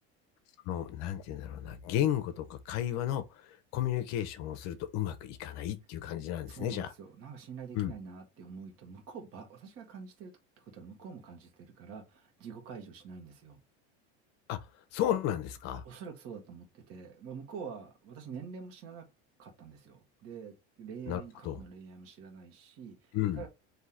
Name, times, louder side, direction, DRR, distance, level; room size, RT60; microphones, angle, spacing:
voice 1, 0.7-6.9 7.7-7.9 14.5-14.6 14.9-15.8 21.1-21.6 23.1-23.4, left 11 dB, 50° left, 0.7 m, -33 dB
voice 2, 6.5-10.3 10.6-13.6 15.8-19.1 19.4-23.5, right 6 dB, 45° right, 1.3 m, -46 dB
3.7 x 2.8 x 4.2 m
supercardioid pair, 140°, 33 cm